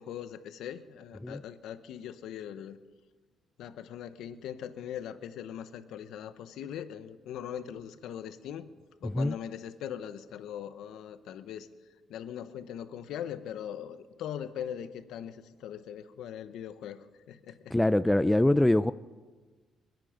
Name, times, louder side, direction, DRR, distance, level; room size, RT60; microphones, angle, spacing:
voice 1, 0.0-2.8 3.6-8.7 9.0-11.7 12.1-17.7, left 9 dB, 85° left, 11 dB, 0.9 m, -40 dB
voice 2, 9.0-9.4 17.7-18.9, left 1 dB, 10° left, 14 dB, 0.4 m, -24 dB
27.5 x 9.2 x 5.1 m, 1.3 s
cardioid pair, 90°, 0 cm